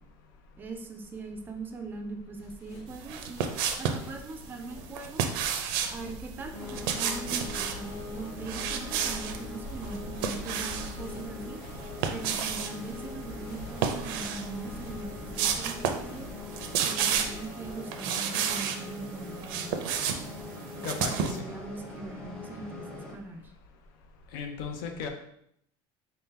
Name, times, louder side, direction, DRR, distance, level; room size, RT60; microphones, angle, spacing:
voice 1, 0.6-5.3 5.9-11.6 12.1-16.3 16.8-19.7 20.8-23.5, right 3 dB, 15° right, 4 dB, 0.3 m, -41 dB
sound 1, 2.4-17.7, left 1 dB, 70° left, 1.2 m, -45 dB
sound 2, 3.0-4.1 4.9-6.0 6.6-7.8 8.4-9.4 9.8-11.0 11.8-12.7 13.7-14.5 14.9-15.0 15.3-16.1 16.4-17.4 17.9-18.8 19.2-21.4, right 7 dB, 80° right, 0.5 m, -31 dB
sound 3, 6.5-23.1, left 2 dB, 5° left, 0.7 m, -43 dB
voice 2, 20.8-21.5 24.3-25.1, left 6 dB, 90° left, 4 dB, 0.7 m, -35 dB
3.9 x 2.8 x 3.6 m, 0.72 s
cardioid pair, 175°, 11 cm